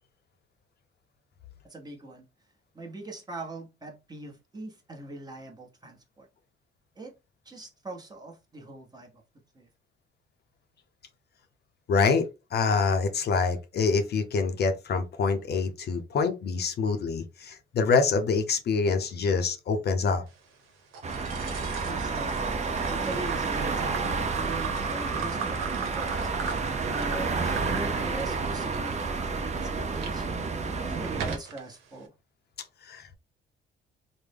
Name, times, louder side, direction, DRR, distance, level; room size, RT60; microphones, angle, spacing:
voice 1, 1.6-2.3 2.7-6.3 7.0-7.1 7.4-9.1 9.5-9.7 21.9-22.4 22.9-26.5 26.8-30.3 30.8-32.1, right 2 dB, 20° right, 1.0 m, -41 dB
voice 2, 11.9-20.2 32.9-33.1, left 4 dB, 55° left, 0.6 m, -26 dB
sound 1, 20.9-30.1 30.7-31.6, right 6 dB, 90° right, 0.8 m, -39 dB
sound 2, 21.0-31.4, right 4 dB, 35° right, 0.6 m, -30 dB
3.3 x 2.1 x 3.4 m
cardioid pair, 90°, 20 cm